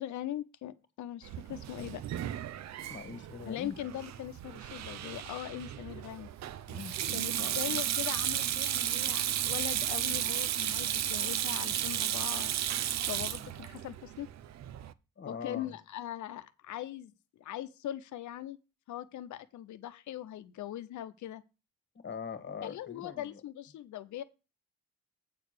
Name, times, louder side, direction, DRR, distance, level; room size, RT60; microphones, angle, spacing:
voice 1, 0.0-2.0 3.5-6.3 7.1-12.5 13.1-14.3 15.2-17.1 17.4-18.6 18.9-21.4 22.6-24.2, left 12 dB, 75° left, 0.8 m, -40 dB
Sink (filling or washing), 1.2-14.9, right 11 dB, 60° right, 0.6 m, -34 dB
voice 2, 2.9-3.8 6.7-7.5 15.2-15.8 21.9-23.4, left 6 dB, 40° left, 1.5 m, -42 dB
8.5 x 4.7 x 6.5 m
cardioid pair, 90°, 30 cm